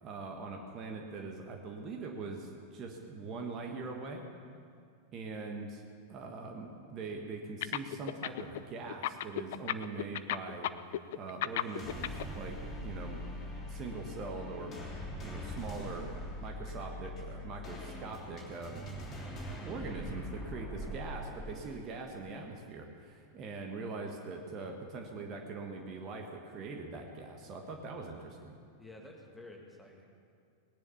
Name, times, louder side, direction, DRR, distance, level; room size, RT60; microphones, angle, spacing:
voice 1, 0.0-4.2 5.1-5.8 6.1-10.7 11.1-13.2 13.7-14.8 15.2-16.1 16.4-18.8 19.6-28.6, right 3 dB, 35° right, 2 dB, 1.5 m, -42 dB
sound 1, 7.6-8.6 8.9-12.2, left 13 dB, 55° left, 0.4 m, -33 dB
sound 2, 11.6-21.8, equal, 25° left, 3.3 m, -42 dB
voice 2, 28.8-30.2, left 2 dB, 5° left, 1 dB, 2.2 m, -51 dB
19.0 x 10.5 x 7.1 m, 2.3 s
figure-of-eight pair, 90°, 0 cm